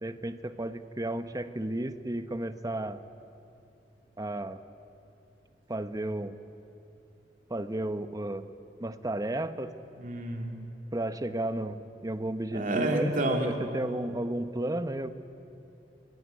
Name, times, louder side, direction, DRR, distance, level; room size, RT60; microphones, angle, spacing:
voice 1, 0.0-3.0 4.2-4.6 5.7-6.4 7.5-8.5 8.8-9.7 10.9-15.1, right 1 dB, 20° right, 11 dB, 0.9 m, -33 dB
voice 2, 10.0-10.5 12.5-13.6, right 1 dB, 50° right, 3 dB, 2.8 m, -29 dB
23.5 x 17.5 x 9.5 m, 2.8 s
head